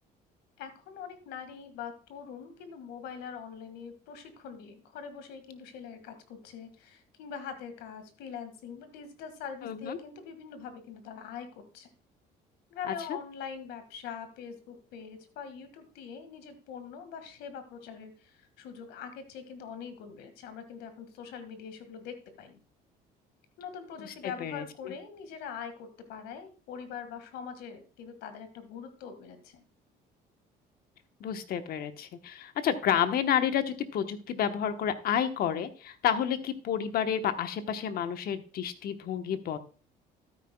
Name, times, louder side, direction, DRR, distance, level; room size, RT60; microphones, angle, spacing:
voice 1, 0.6-11.9 12.7-22.6 23.6-29.6, left 7 dB, 85° left, 9 dB, 1.9 m, -43 dB
voice 2, 9.6-10.0 12.9-13.0 24.0-24.1 24.4-24.6 31.2-39.6, left 9 dB, 65° left, 9 dB, 1.1 m, -30 dB
12.5 x 9.8 x 2.3 m, 0.37 s
cardioid pair, 110°, 17 cm